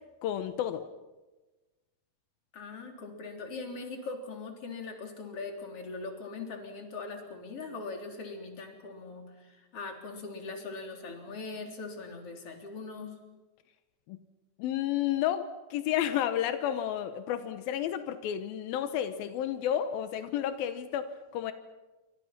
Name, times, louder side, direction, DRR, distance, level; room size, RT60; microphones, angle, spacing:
voice 1, 0.2-0.8 14.1-14.2 14.6-21.5, left 10 dB, 85° left, 10 dB, 2.9 m, -31 dB
voice 2, 2.5-13.1, left 3 dB, 40° left, 3 dB, 4.4 m, -41 dB
28.0 x 25.0 x 6.0 m, 1.2 s
omnidirectional pair, 4.1 m